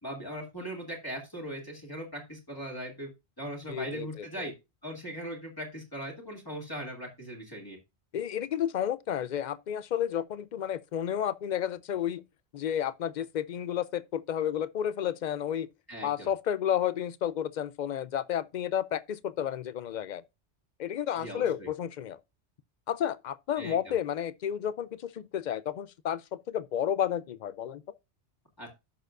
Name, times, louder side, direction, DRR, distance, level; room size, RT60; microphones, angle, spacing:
voice 1, 0.0-3.1 3.4-4.5 4.8-7.8 15.9-16.3 21.2-21.7 23.6-23.9 28.6-28.7, equal, 20° left, 2.3 m, -39 dB
voice 2, 3.7-4.5 8.1-12.2 12.5-15.7 16.0-20.2 20.8-22.2 22.9-27.8, left 10 dB, 55° left, 0.5 m, -31 dB
11.0 x 6.8 x 2.5 m
omnidirectional pair, 1.1 m